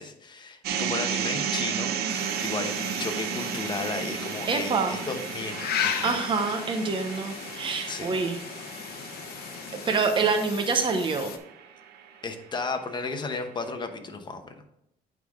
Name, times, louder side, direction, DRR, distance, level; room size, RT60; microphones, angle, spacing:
voice 1, 0.0-6.6 7.9-8.1 12.2-14.7, left 4 dB, 25° left, 5 dB, 1.0 m, -34 dB
sound 1, 0.6-12.8, right 8 dB, 70° right, 0.7 m, -34 dB
sound 2, 2.1-11.4, left 8 dB, 65° left, 0.8 m, -36 dB
voice 2, 4.5-5.0 6.0-8.4 9.7-11.3, right 4 dB, 30° right, 4 dB, 0.8 m, -26 dB
9.4 x 3.8 x 3.7 m, 0.80 s
cardioid pair, 110°, 17 cm